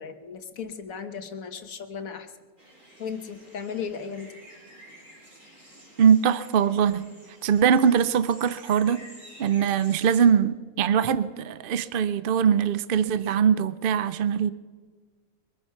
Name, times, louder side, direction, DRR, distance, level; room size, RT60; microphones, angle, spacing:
voice 1, 0.0-2.3 3.0-4.3, left 6 dB, 75° left, 8 dB, 1.6 m, -36 dB
sound 1, 2.6-10.3, right 1 dB, 35° right, 3.9 m, -50 dB
voice 2, 6.0-7.1 7.4-9.0 9.4-14.5, right 7 dB, 60° right, 14 dB, 0.6 m, -22 dB
23.0 x 10.0 x 5.8 m, 1.4 s
omnidirectional pair, 1.5 m